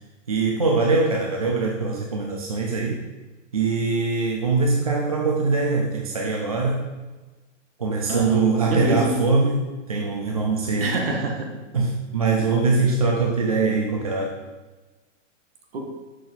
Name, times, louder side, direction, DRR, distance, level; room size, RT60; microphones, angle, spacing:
voice 1, 0.3-3.0 3.5-6.8 7.8-11.0 11.7-14.4, right 3 dB, 30° right, 0 dB, 0.4 m, -22 dB
voice 2, 8.1-9.2 10.8-11.6 15.7-15.9, right 1 dB, 50° right, 2 dB, 1.4 m, -26 dB
6.6 x 6.1 x 4.2 m, 1.2 s
hypercardioid pair, 175°, 38 cm